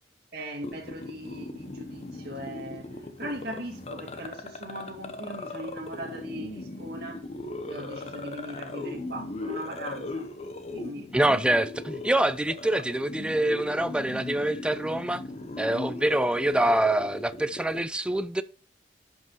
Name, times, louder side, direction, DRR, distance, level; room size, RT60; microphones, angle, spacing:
voice 1, 0.3-7.3 7.7-10.3 10.7-11.1, right 1 dB, 65° right, 2.2 m, -39 dB
sound 1, 0.6-17.8, left 2 dB, 35° left, 0.9 m, -39 dB
voice 2, 11.1-15.2 15.6-18.4, right 1 dB, 5° right, 0.4 m, -25 dB
11.0 x 5.4 x 3.0 m
head